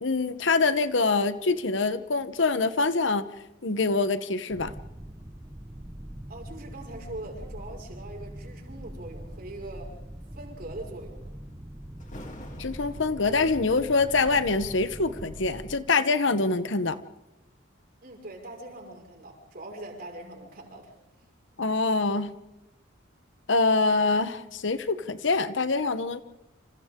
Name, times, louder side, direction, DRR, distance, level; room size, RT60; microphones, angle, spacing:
voice 1, 0.0-3.3 3.6-4.7 12.6-17.0 21.6-22.3 23.5-26.2, left 3 dB, 70° left, 12 dB, 1.0 m, -25 dB
sound 1, 4.5-15.8, right 1 dB, 15° right, 0.8 m, -42 dB
voice 2, 6.3-9.9 10.4-11.2 18.0-20.9, right 1 dB, 50° right, 1 dB, 5.5 m, -42 dB
Thunder, 12.0-17.0 17.6-17.9 18.5-21.3 21.6-21.7, left 1 dB, 40° left, 3.0 m, -50 dB
29.5 x 27.0 x 3.8 m, 0.96 s
head